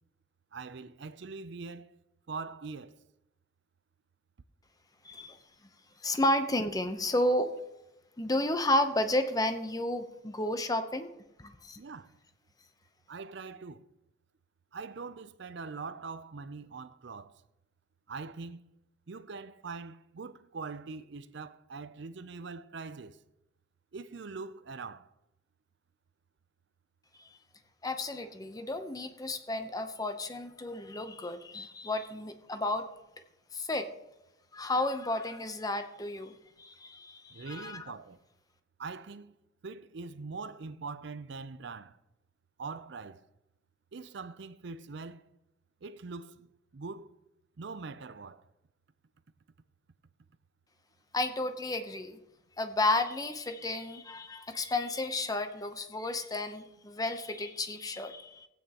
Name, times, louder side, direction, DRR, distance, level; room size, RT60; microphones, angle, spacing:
voice 1, 0.5-2.0 2.3-3.0 11.8-12.2 13.1-13.9 14.7-17.4 18.1-18.6 19.1-23.2 23.9-25.1 37.3-38.2 38.8-39.3 39.6-42.0 42.6-43.2 43.9-45.2 45.8-47.2 47.6-48.4, right 4 dB, 60° right, 0.5 m, -43 dB
voice 2, 5.0-5.4 6.0-7.5 8.2-11.1 11.4-11.8 27.2-27.3 27.8-32.9 33.5-33.9 34.5-37.8 51.1-52.2 52.6-58.5, left 1 dB, 20° left, 0.7 m, -32 dB
17.0 x 8.9 x 2.9 m
head